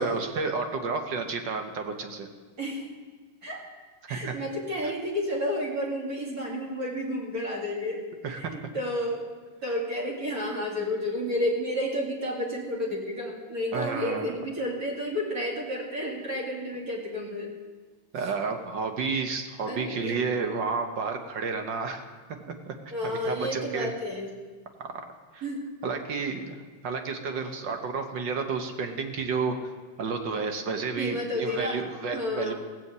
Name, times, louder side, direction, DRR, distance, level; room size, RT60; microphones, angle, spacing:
voice 1, 0.0-2.3 4.1-4.4 8.2-8.6 13.7-14.3 18.1-22.0 22.3-22.8 23.0-23.9 25.3-25.4 25.8-29.6 30.0-32.5, right 4 dB, 65° right, 5 dB, 1.8 m, -31 dB
voice 2, 2.6-2.9 3.4-3.6 4.1-9.3 9.6-17.5 18.2-18.3 19.7-20.2 22.9-24.3 25.4-25.7 31.0-31.9 32.1-32.5, left 1 dB, 45° right, -3 dB, 2.9 m, -31 dB
16.0 x 7.8 x 8.1 m, 1.4 s
omnidirectional pair, 2.2 m